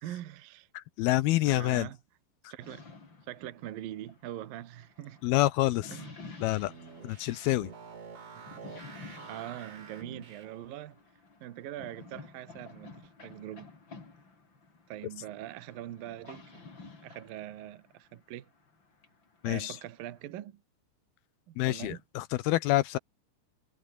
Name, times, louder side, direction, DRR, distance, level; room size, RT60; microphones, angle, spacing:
voice 1, 0.0-0.7 1.5-2.0 2.5-2.9 3.2-5.2 5.9-6.5 8.3-8.6 9.3-11.0 11.4-13.7 14.9-18.5 19.5-20.6 21.5-22.0, right 13 dB, 65° right, 2.6 m, -43 dB
voice 2, 0.7-1.9 5.2-6.0 6.4-6.7 7.0-7.7 19.4-19.8 21.6-23.0, left 17 dB, 85° left, 2.2 m, -27 dB
sound 1, 2.6-20.3, left 4 dB, 25° left, 4.2 m, -52 dB
sound 2, 6.3-10.8, right 6 dB, 85° right, 8.9 m, -48 dB
omnidirectional pair, 5.5 m